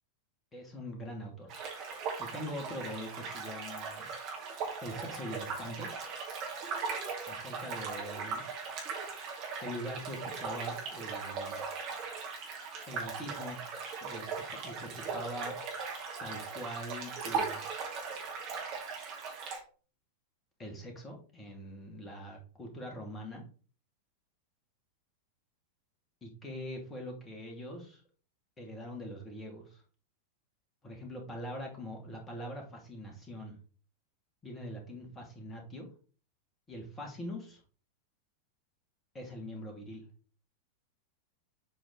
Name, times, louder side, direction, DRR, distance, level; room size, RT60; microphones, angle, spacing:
voice 1, 0.5-1.6 2.2-4.1 4.8-5.9 7.3-8.4 9.6-11.6 12.9-13.6 14.0-15.6 16.2-17.8 20.6-23.4 26.2-28.0 28.6-29.8 30.8-33.5 34.4-35.9 36.7-37.6 39.1-40.0, equal, 15° left, 1 dB, 2.6 m, -43 dB
sound 1, 1.5-19.6, right 5 dB, 40° right, 2.5 m, -39 dB
7.7 x 4.6 x 4.0 m, 0.38 s
figure-of-eight pair, 90°, 0 cm